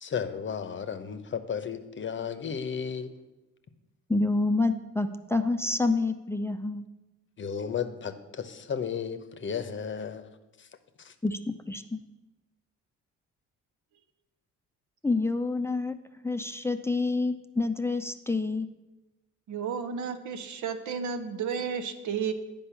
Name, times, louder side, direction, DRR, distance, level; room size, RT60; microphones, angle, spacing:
voice 1, 0.0-3.1 7.4-10.3 11.0-11.1, left 7 dB, 40° left, 10 dB, 0.8 m, -34 dB
voice 2, 4.1-6.8 11.2-12.0 15.0-16.0 16.2-18.7, left 3 dB, 10° left, 8 dB, 0.5 m, -28 dB
voice 3, 19.5-22.3, right 6 dB, 75° right, 8 dB, 0.9 m, -32 dB
8.6 x 5.4 x 6.9 m, 1.1 s
cardioid pair, 90°, 30 cm